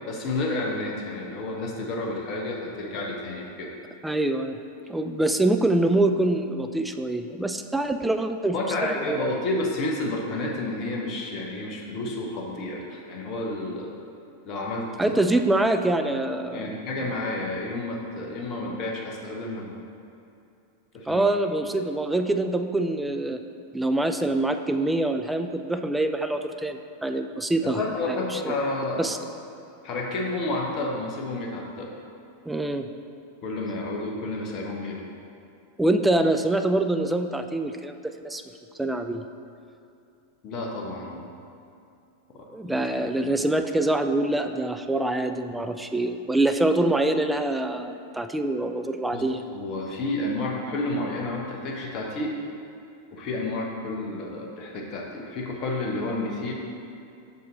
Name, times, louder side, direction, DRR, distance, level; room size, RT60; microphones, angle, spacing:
voice 1, 0.1-3.7 8.5-13.9 14.4-15.2 16.5-19.8 20.9-21.2 27.6-29.1 29.8-31.9 33.4-35.1 40.4-41.3 42.3-42.8 43.2-43.3 49.1-49.2 49.5-52.4 53.1-56.5, left 2 dB, 35° left, -1 dB, 0.9 m, -30 dB
voice 2, 4.0-4.6 4.9-8.6 8.8-9.3 15.0-16.8 21.1-23.4 23.7-27.8 28.1-28.5 29.0-29.2 32.5-32.9 35.8-37.9 38.2-38.4 38.8-39.2 42.5-49.4, right 2 dB, 5° right, 7 dB, 0.3 m, -25 dB
6.0 x 5.3 x 3.9 m, 2.6 s
figure-of-eight pair, 90°, 0 cm